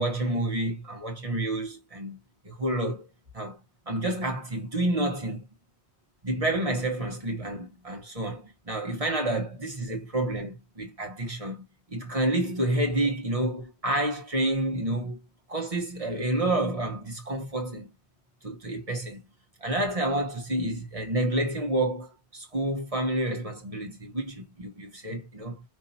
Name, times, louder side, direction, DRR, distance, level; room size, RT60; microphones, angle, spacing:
voice 1, 0.0-2.2 2.4-3.1 3.3-3.6 3.9-5.4 6.2-11.6 11.9-15.2 15.5-17.9 18.4-19.2 19.6-25.6, right 1 dB, 35° right, 1.2 m, -29 dB
5.5 x 2.7 x 2.8 m
omnidirectional pair, 1.1 m